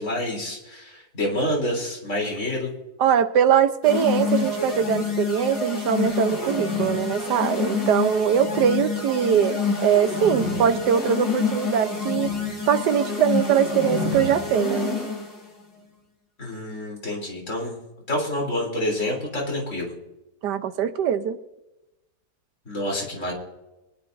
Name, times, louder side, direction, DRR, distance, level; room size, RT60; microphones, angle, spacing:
voice 1, 0.0-2.7 16.4-17.8 18.1-19.9 22.7-23.3, left 1 dB, 45° left, -1 dB, 3.8 m, -28 dB
voice 2, 3.0-12.3 12.7-15.0 20.4-21.4, right 8 dB, 80° right, 10 dB, 1.4 m, -22 dB
sound 1, 3.8-15.4, left 4 dB, 65° left, 3.6 m, -27 dB
23.5 x 10.5 x 2.6 m, 0.95 s
omnidirectional pair, 1.8 m